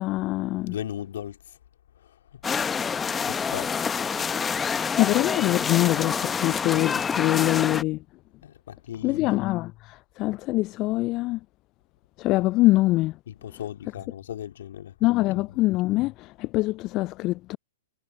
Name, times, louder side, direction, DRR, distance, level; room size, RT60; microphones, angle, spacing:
voice 1, 0.0-0.7 4.9-8.0 9.0-11.4 12.2-13.2 15.0-17.6, left 19 dB, 35° left, 0.3 m, -24 dB
voice 2, 0.7-1.6 2.0-2.4 2.7-3.7 8.4-9.4 13.3-15.0 15.5-15.6, left 10 dB, 65° left, 2.3 m, -38 dB
sound 1, 2.4-7.8, left 6 dB, 15° left, 0.9 m, -27 dB
hypercardioid pair, 115°, 0 cm